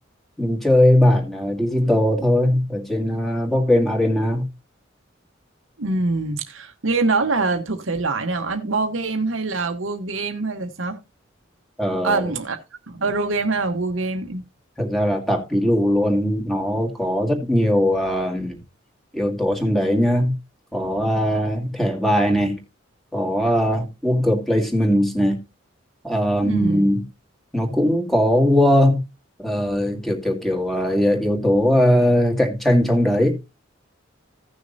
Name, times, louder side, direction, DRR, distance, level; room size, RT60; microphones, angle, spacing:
voice 1, 0.4-4.5 11.8-12.3 14.8-18.6 19.1-20.3 20.7-22.6 23.1-25.4 26.0-27.0 27.5-29.0 29.4-33.3, equal, ahead, 2.1 m, -20 dB
voice 2, 5.8-11.0 12.0-12.6 12.9-14.4 26.4-26.8, right 3 dB, 80° right, 1.1 m, -24 dB
16.0 x 6.4 x 2.7 m
head